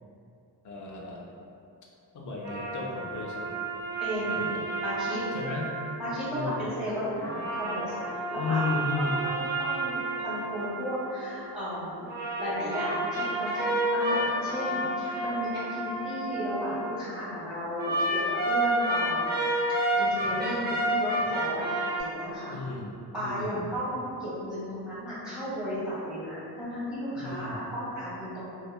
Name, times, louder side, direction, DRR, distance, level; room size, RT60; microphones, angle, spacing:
voice 1, 0.6-1.3 2.1-3.6 4.3-4.6 5.3-5.7 6.3-6.6 8.4-9.2 22.5-22.9 23.2-23.6 27.2-27.6, left 3 dB, 50° left, -2 dB, 0.5 m, -34 dB
sound 1, 2.4-6.6 7.1-11.5 12.1-17.1 17.8-22.0, right 1 dB, 25° right, 0.6 m, -30 dB
voice 2, 4.0-4.5 4.8-5.2 6.0-8.6 9.0-12.1 12.4-19.4 19.9-21.6 21.9-22.6 23.1-28.5, equal, ahead, -13 dB, 1.4 m, -34 dB
2.8 x 2.3 x 2.3 m, 2.6 s
cardioid pair, 105°, 40 cm